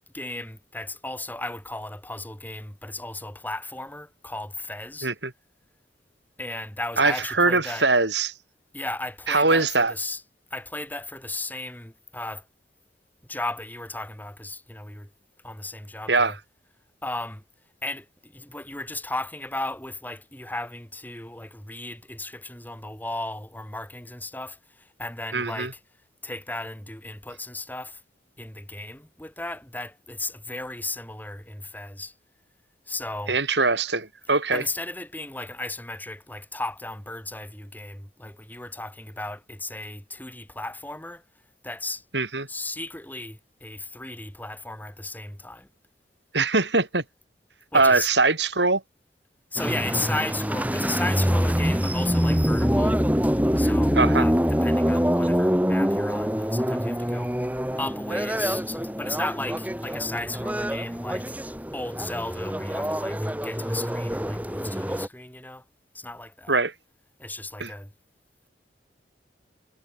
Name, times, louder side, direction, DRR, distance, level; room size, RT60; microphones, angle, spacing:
voice 1, 0.1-5.1 6.4-7.9 8.7-10.2 10.5-12.4 13.3-15.1 15.4-16.4 17.0-17.4 17.8-25.8 26.2-28.0 28.4-32.1 32.9-33.4 34.5-41.2 41.6-42.0 42.5-45.7 47.7-48.1 49.5-53.0 53.6-65.6 65.9-66.6 67.2-67.9, left 2 dB, 10° left, 6.8 m, -35 dB
voice 2, 7.0-8.3 9.3-9.9 16.1-16.3 25.3-25.7 33.3-34.6 42.1-42.5 46.3-47.0 47.7-48.8 53.9-54.2 66.5-66.7 67.6-67.7, right 3 dB, 80° right, 6.5 m, -22 dB
sound 1, 49.6-65.1, equal, 10° right, 6.6 m, -25 dB
head